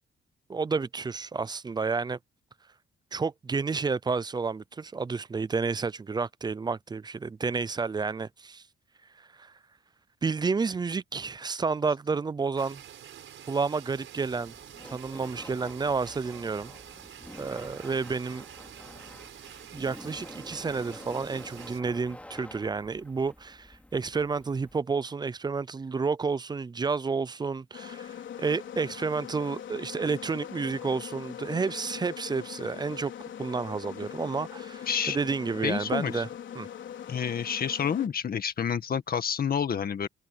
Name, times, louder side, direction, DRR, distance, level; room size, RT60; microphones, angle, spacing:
voice 1, 0.5-2.2 3.1-8.6 9.4-9.5 10.2-12.8 13.5-14.5 14.9-16.7 17.4-18.4 19.7-33.1 33.4-36.3 36.6-36.7, right 4 dB, 20° right, 0.4 m, -30 dB
sound 1, 12.6-21.8, right 10 dB, 75° right, 5.3 m, -48 dB
Laughter, 14.3-24.8, left 1 dB, 5° left, 2.9 m, -48 dB
sound 2, 27.7-38.1, left 9 dB, 70° left, 4.1 m, -42 dB
voice 2, 34.9-35.2 35.6-36.2 37.1-40.1, left 7 dB, 45° left, 1.9 m, -29 dB
cardioid pair, 135°, 20 cm